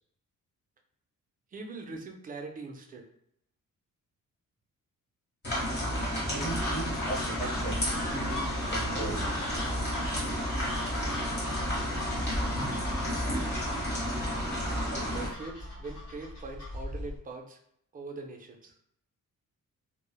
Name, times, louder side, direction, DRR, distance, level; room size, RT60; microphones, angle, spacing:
voice 1, 1.5-3.1 14.9-17.6 17.9-18.7, right 3 dB, 25° right, 2 dB, 0.4 m, -42 dB
sound 1, 5.4-15.3, equal, 35° left, 1.1 m, -31 dB
voice 2, 6.2-9.3, right 2 dB, ahead, -8 dB, 0.9 m, -38 dB
sound 2, 6.5-17.2, left 2 dB, 55° left, 1.2 m, -40 dB
sound 3, 7.6-15.2, left 1 dB, 80° left, 1.0 m, -47 dB
3.1 x 2.0 x 2.2 m, 0.71 s
cardioid pair, 140°, 32 cm